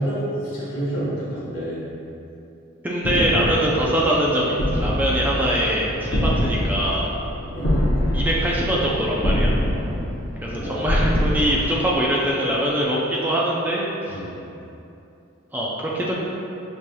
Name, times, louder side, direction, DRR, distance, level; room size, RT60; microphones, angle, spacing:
voice 1, 0.0-1.8 3.1-3.2 6.1-6.3 7.5-7.7 10.5-11.2 14.1-14.3, right 1 dB, 85° left, -9 dB, 1.5 m, -29 dB
voice 2, 2.8-7.1 8.1-9.5 10.4-14.2 15.5-16.1, equal, 10° right, -5 dB, 0.4 m, -23 dB
sound 1, 3.0-12.5, equal, 50° left, 0.7 m, -25 dB
5.3 x 3.1 x 2.2 m, 2.8 s
head